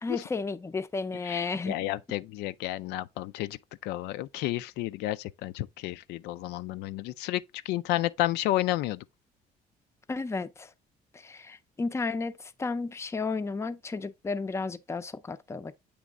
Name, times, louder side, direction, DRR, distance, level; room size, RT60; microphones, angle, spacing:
voice 1, 0.0-1.8 10.1-10.7 11.2-15.7, left 4 dB, 15° left, 0.5 m, -33 dB
voice 2, 1.2-3.6 3.8-9.0, left 15 dB, 85° left, 0.4 m, -31 dB
8.3 x 3.1 x 3.6 m
cardioid pair, 110°, 17 cm